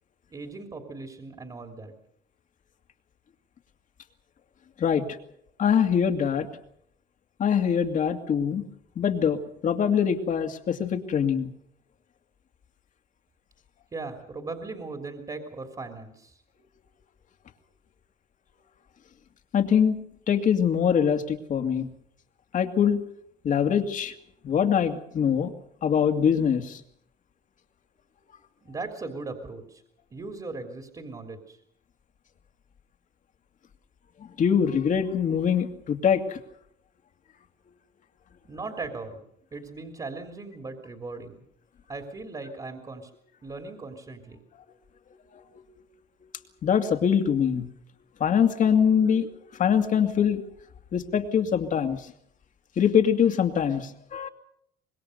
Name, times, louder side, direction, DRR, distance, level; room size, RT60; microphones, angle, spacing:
voice 1, 0.3-1.9 13.9-16.4 28.6-29.8 30.1-31.6 38.4-39.2 39.5-41.4 41.9-43.1 43.4-44.4, right 3 dB, 25° right, 5 dB, 3.3 m, -38 dB
voice 2, 5.6-6.5 7.4-8.6 9.0-9.4 9.6-11.5 19.5-20.0 20.3-21.9 22.5-23.0 23.4-24.1 24.4-25.5 25.8-26.8 34.2-36.4 46.6-47.7 48.2-50.4 50.9-52.1 52.8-54.3, left 7 dB, 50° left, 6 dB, 2.4 m, -23 dB
25.5 x 21.0 x 6.6 m, 0.72 s
cardioid pair, 110°, 17 cm